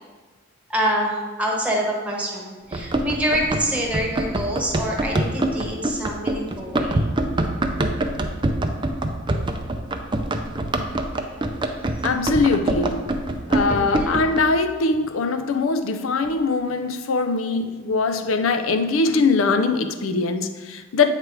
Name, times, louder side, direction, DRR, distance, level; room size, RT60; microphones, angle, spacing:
voice 1, 0.7-7.0 11.9-12.1 13.7-14.2, equal, 5° right, -2 dB, 1.1 m, -26 dB
Run, 2.7-14.4, right 1 dB, 25° right, 0.4 m, -25 dB
voice 2, 12.0-13.1 13.5-21.1, left 3 dB, 80° left, 8 dB, 0.5 m, -22 dB
8.1 x 3.3 x 4.8 m, 1.3 s
head